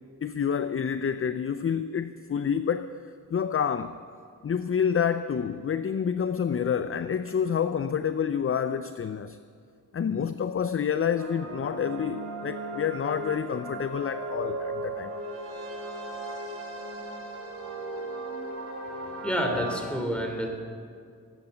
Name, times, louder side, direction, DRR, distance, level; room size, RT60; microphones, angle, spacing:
voice 1, 0.2-3.0 3.3-4.0 4.4-9.4 9.9-15.1, left 7 dB, 35° left, 0.5 m, -28 dB
sound 1, 11.2-19.8, right 2 dB, 40° right, 3.5 m, -36 dB
voice 2, 18.9-20.5, equal, 5° left, 3.4 m, -29 dB
18.5 x 9.1 x 7.0 m
cardioid pair, 55°, 37 cm